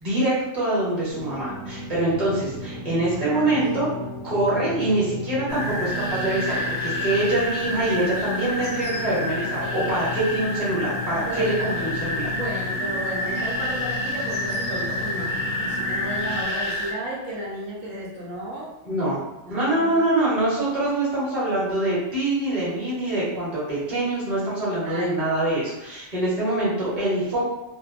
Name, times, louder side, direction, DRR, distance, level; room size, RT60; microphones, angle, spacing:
voice 1, 0.0-3.9 4.2-12.3 18.9-19.2 19.5-27.5, right 1 dB, 35° right, -9 dB, 1.1 m, -24 dB
sound 1, 1.1-16.4, left 2 dB, 50° right, 1.0 m, -35 dB
voice 2, 3.1-3.8 11.1-11.8 12.3-18.7 19.4-20.1 24.8-25.2, right 1 dB, 85° right, -4 dB, 1.0 m, -34 dB
sound 2, 5.5-16.9, left 1 dB, 55° left, 0.6 m, -29 dB
2.5 x 2.2 x 2.4 m, 0.96 s
omnidirectional pair, 1.3 m